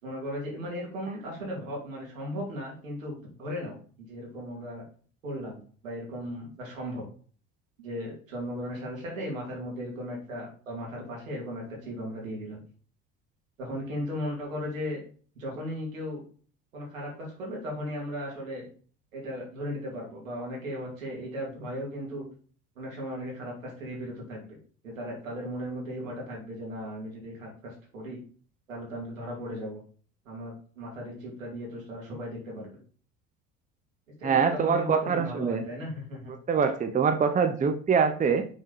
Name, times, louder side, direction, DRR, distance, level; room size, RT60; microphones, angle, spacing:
voice 1, 0.0-3.8 4.1-4.8 5.2-7.1 7.8-12.6 13.6-15.0 15.4-16.2 16.7-18.6 19.1-22.2 22.8-24.6 24.8-28.2 28.7-29.8 30.3-32.7 34.2-36.3, equal, 85° right, -2 dB, 2.6 m, -36 dB
voice 2, 34.2-35.6 36.3-38.5, right 6 dB, 20° right, 8 dB, 0.7 m, -24 dB
6.1 x 4.1 x 4.0 m, 0.43 s
hypercardioid pair, 65°, 39 cm